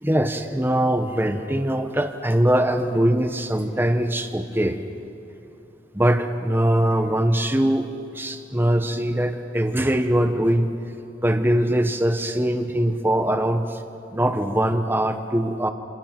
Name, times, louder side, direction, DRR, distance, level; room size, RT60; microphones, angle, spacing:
voice 1, 0.0-4.8 5.9-7.9 8.1-10.7 11.2-13.8 14.1-15.7, right 1 dB, 10° right, 7 dB, 1.2 m, -22 dB
27.0 x 27.0 x 6.1 m, 2.9 s
head